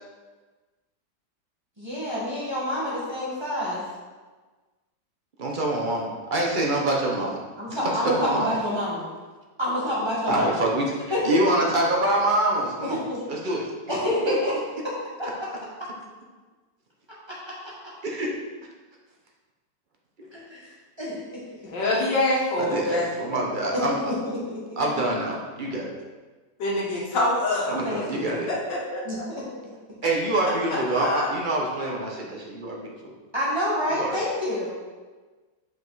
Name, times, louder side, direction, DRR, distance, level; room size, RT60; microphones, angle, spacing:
voice 1, 1.8-3.8 7.6-9.0 9.6-10.6 11.1-11.2 11.4-11.5 12.8-13.2 13.9-14.5 15.2-15.3 17.3-17.5 20.3-20.7 21.0-21.2 23.7-24.8 27.8-28.4 29.0-29.4 33.3-34.7, left 1 dB, 15° right, -7 dB, 1.4 m, -28 dB
voice 2, 5.4-7.4 7.7-8.6 10.3-13.6 13.9-14.0 14.3-14.4 18.0-18.3 20.2-20.3 22.6-24.0 24.8-25.9 27.7-28.5 30.0-33.1 33.9-34.2, right 1 dB, 40° right, -1 dB, 0.7 m, -26 dB
voice 3, 21.7-23.2 26.6-27.7 28.5-29.0 30.9-31.4, left 1 dB, 75° left, -4 dB, 2.0 m, -25 dB
5.2 x 5.2 x 3.9 m, 1.3 s
omnidirectional pair, 1.9 m